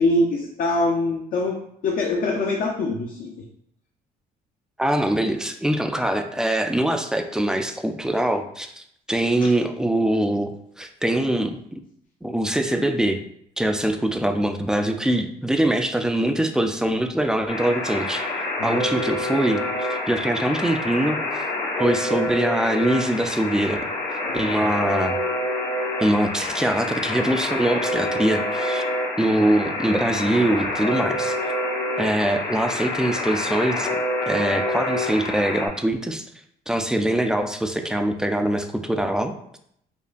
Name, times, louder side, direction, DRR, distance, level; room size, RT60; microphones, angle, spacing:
voice 1, 0.0-3.5 9.4-9.5 18.6-18.8 24.2-24.6, left 2 dB, 55° left, 0 dB, 0.5 m, -24 dB
voice 2, 4.8-11.8 12.2-13.2 13.6-19.6 19.9-21.2 21.8-23.8 24.1-25.2 26.0-28.8 29.2-31.4 32.0-33.9 34.2-36.3 36.7-39.3, right 1 dB, 5° right, 6 dB, 0.3 m, -23 dB
Alarm, 17.5-35.7, left 1 dB, 75° left, 1.1 m, -27 dB
5.3 x 2.1 x 2.5 m, 0.69 s
cardioid pair, 110°, 17 cm